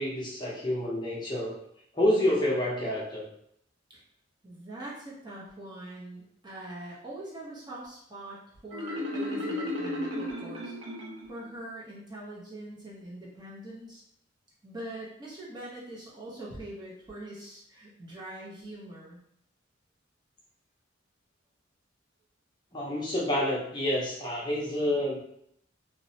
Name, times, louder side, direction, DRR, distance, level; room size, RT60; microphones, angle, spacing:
voice 1, 0.0-1.5 1.9-3.3 22.7-25.2, left 1 dB, 20° left, -5 dB, 0.6 m, -28 dB
voice 2, 4.4-10.8 11.3-14.0 14.6-19.2, right 1 dB, 20° right, -6 dB, 0.6 m, -43 dB
Marimba xylophone, 8.7-11.5, left 1 dB, 75° right, 0.7 m, -34 dB
2.9 x 2.0 x 2.7 m, 0.70 s
head